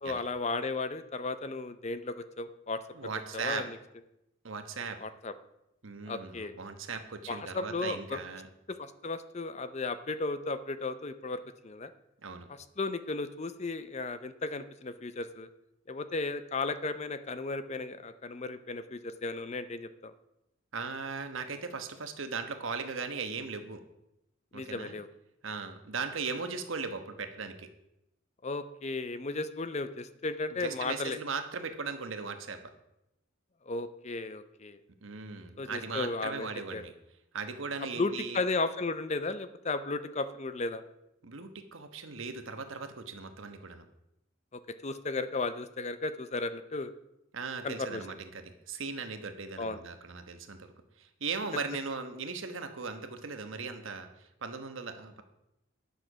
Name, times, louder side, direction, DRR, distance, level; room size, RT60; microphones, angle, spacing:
voice 1, 0.0-2.8 3.3-3.8 5.0-5.3 6.1-6.5 7.3-8.2 8.7-11.9 12.8-15.5 15.9-20.1 24.5-25.1 28.4-31.2 33.7-34.8 35.6-36.8 38.0-40.8 44.5-46.9 47.6-48.0 49.6-49.8, left 3 dB, 35° left, 12 dB, 0.5 m, -35 dB
voice 2, 2.9-3.6 4.4-5.0 5.8-8.5 12.2-12.5 20.7-23.8 24.5-24.9 25.4-27.7 30.5-32.6 35.0-36.9 37.3-38.4 41.2-43.8 47.3-50.7 51.0-55.2, right 4 dB, 75° right, 7 dB, 1.2 m, -38 dB
10.5 x 6.5 x 6.1 m, 0.86 s
head